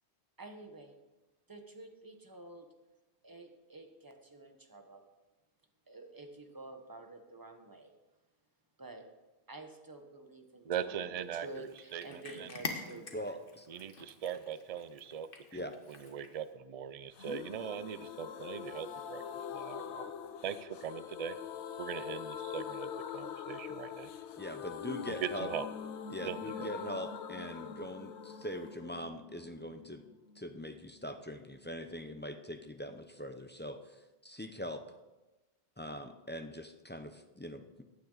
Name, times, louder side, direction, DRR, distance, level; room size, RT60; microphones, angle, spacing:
voice 1, 0.4-0.9 1.5-2.7 3.2-5.0 5.9-7.9 8.8-9.0 9.5-13.4, right 2 dB, 20° right, 5 dB, 1.2 m, -50 dB
voice 2, 10.6-11.5 11.9-12.5 13.7-15.7 16.0-19.2 19.5-20.1 20.4-21.4 21.8-24.1 25.1-25.7 26.3-26.7, right 8 dB, 45° right, 13 dB, 0.5 m, -40 dB
Cat, 11.3-16.5, left 3 dB, 55° left, 1.4 m, -46 dB
voice 3, 13.1-13.7 15.5-15.8 24.4-25.5 26.1-30.0 30.4-34.8 35.8-37.8, equal, 10° left, 7 dB, 0.6 m, -42 dB
sound 1, 17.2-30.8 31.0-31.1 31.4-31.5, left 8 dB, 90° left, 1.0 m, -43 dB
15.5 x 9.6 x 4.0 m, 1.1 s
omnidirectional pair, 1.1 m